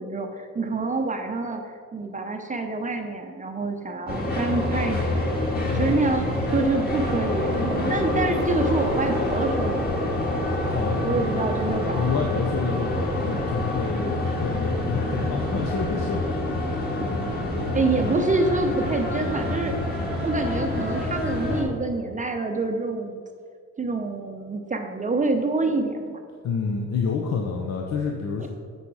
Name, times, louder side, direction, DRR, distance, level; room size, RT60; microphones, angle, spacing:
voice 1, 0.0-9.9 11.0-12.2 17.0-17.1 17.7-19.7 20.2-23.2 23.8-26.2 28.4-28.5, right 3 dB, 25° right, 4 dB, 0.6 m, -27 dB
sound 1, 4.1-21.6, left 1 dB, 30° left, 2.0 m, -26 dB
voice 2, 5.7-6.0 10.7-16.6 16.9-17.3 18.0-18.1 26.4-28.5, left 5 dB, 60° left, 1 dB, 0.8 m, -29 dB
9.3 x 4.2 x 4.7 m, 2.1 s
cardioid pair, 90°, 30 cm